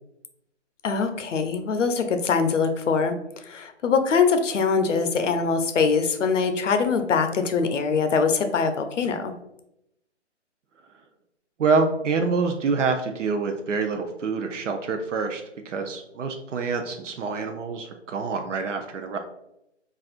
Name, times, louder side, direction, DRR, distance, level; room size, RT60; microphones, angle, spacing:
voice 1, 0.8-3.2 3.4-9.3, left 5 dB, 85° left, 7 dB, 0.6 m, -23 dB
voice 2, 11.6-19.2, right 4 dB, 80° right, 4 dB, 0.5 m, -26 dB
4.1 x 2.4 x 2.4 m, 0.83 s
hypercardioid pair, 155°, 36 cm